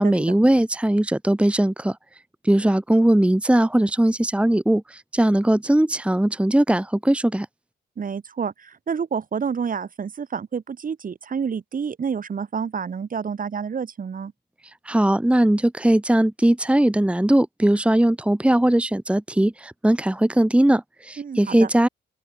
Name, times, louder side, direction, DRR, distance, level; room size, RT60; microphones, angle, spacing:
voice 1, 0.0-2.0 2.4-7.5 14.6-21.9, right 1 dB, 5° right, 1.5 m, -19 dB
voice 2, 8.0-14.3 21.2-21.7, right 6 dB, 45° right, 5.4 m, -29 dB
open air
cardioid pair, 90°, 20 cm